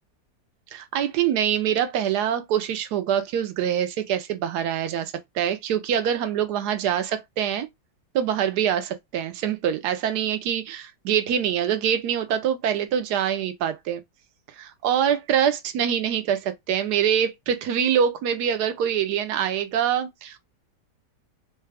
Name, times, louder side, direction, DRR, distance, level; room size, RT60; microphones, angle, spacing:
voice 1, 0.7-7.7 8.1-14.0 14.6-20.4, right 9 dB, 70° right, 1.1 m, -24 dB
3.2 x 2.2 x 3.3 m
omnidirectional pair, 1.9 m